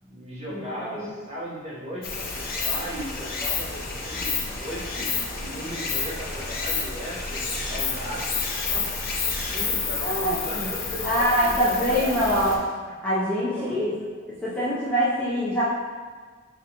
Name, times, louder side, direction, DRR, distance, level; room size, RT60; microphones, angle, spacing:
voice 1, 0.0-8.4 8.6-8.9 9.5-12.1 13.4-13.8, equal, 30° right, -9 dB, 1.2 m, -37 dB
voice 2, 0.5-1.1 10.0-10.7 11.0-12.5 13.0-13.9 14.4-15.6, equal, 5° left, -11 dB, 0.6 m, -24 dB
Stream, 2.0-12.6, left 4 dB, 50° left, 0.6 m, -30 dB
3.5 x 3.5 x 2.9 m, 1.5 s
head